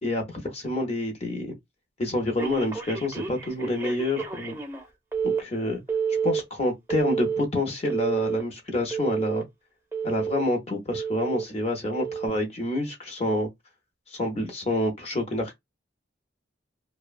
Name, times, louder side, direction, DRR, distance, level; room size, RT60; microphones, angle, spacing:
voice 1, 0.0-1.5 2.0-4.6 5.2-5.8 6.2-9.4 10.0-13.5 14.1-15.6, left 1 dB, 35° left, 0.7 m, -28 dB
Telephone, 2.4-4.8 5.1-5.4 5.9-6.4 6.9-7.4 7.9-8.4 8.9-9.4 9.9-10.4 10.9-11.4 11.9-12.3, right 6 dB, 15° right, 0.6 m, -29 dB
2.7 x 2.1 x 2.4 m
head